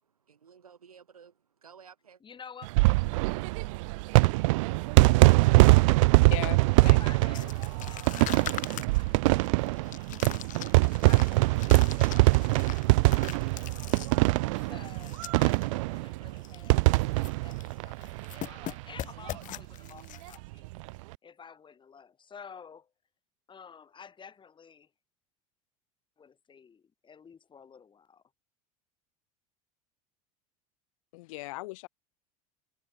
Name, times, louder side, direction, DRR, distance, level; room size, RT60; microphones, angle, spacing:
voice 1, 0.0-2.2, right 7 dB, 85° right, 4.4 m, -54 dB
voice 2, 2.2-2.7 4.4-4.8 5.2-6.1 6.8-10.4 11.0-13.7 14.5-20.6 21.2-22.9 23.5-24.9 26.2-28.2, left 6 dB, 25° left, 2.5 m, -51 dB
sound 1, 2.6-18.7 19.0-19.1 19.3-19.4 20.6-20.9, right 24 dB, 65° right, 0.4 m, -23 dB
voice 3, 6.3-7.0 7.4-7.5 31.1-31.9, left 22 dB, 65° left, 3.4 m, -38 dB
sound 2, 7.3-15.6 15.9-16.0 16.4-16.7 16.9-17.7 18.0-20.4, left 13 dB, 45° left, 2.3 m, -42 dB
hypercardioid pair, 75°, 18 cm